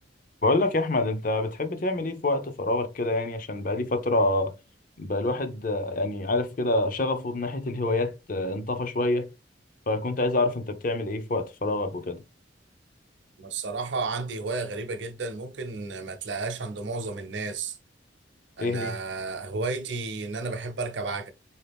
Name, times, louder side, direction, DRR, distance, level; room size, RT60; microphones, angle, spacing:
voice 1, 0.4-4.5 5.0-9.3 9.9-12.2 18.6-18.9, left 2 dB, 45° left, 0.6 m, -26 dB
voice 2, 13.4-17.8 18.6-21.3, right 3 dB, 70° right, 0.7 m, -32 dB
4.2 x 2.8 x 3.3 m
head